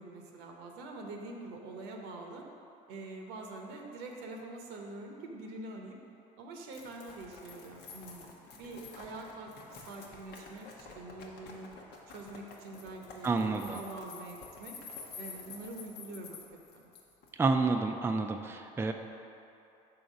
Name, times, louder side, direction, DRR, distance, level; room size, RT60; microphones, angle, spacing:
voice 1, 0.0-2.4 2.9-6.0 6.4-11.7 12.1-14.8 15.2-16.4 16.7-16.9, right 2 dB, 80° right, 2 dB, 0.8 m, -45 dB
sound 1, 6.7-17.3, left 4 dB, 70° left, 0.9 m, -49 dB
voice 2, 13.2-13.8 17.4-18.9, right 3 dB, 15° right, 5 dB, 0.4 m, -29 dB
5.7 x 3.9 x 5.1 m, 2.8 s
supercardioid pair, 80°, 17 cm